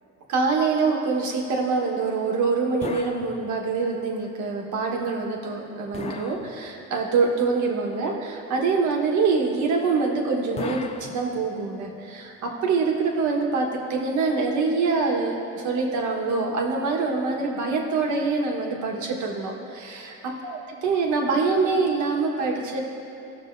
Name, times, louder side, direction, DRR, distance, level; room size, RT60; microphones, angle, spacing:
voice 1, 0.3-20.1 20.4-20.6 20.8-22.8, right 4 dB, 80° right, 0 dB, 1.5 m, -25 dB
sound 1, 2.8-4.0 5.9-7.2 10.6-11.8, left 4 dB, 20° left, 0.4 m, -37 dB
17.0 x 6.5 x 2.7 m, 2.9 s
cardioid pair, 140°, 29 cm